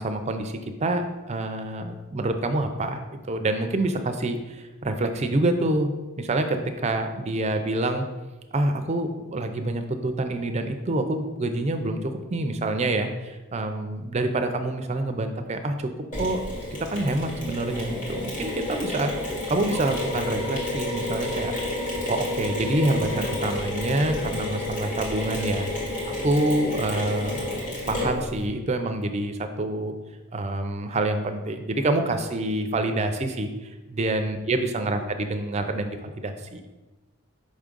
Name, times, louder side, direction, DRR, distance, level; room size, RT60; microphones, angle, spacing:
voice 1, 0.0-5.9 6.2-8.0 8.5-15.9 16.2-16.4 16.9-21.5 22.1-25.7 26.0-27.6 27.9-29.9 30.3-36.6, right 2 dB, 30° right, 6 dB, 0.5 m, -27 dB
Mechanisms, 16.1-28.4, left 1 dB, 35° left, 1.9 m, -30 dB
5.3 x 3.6 x 5.2 m, 1.1 s
head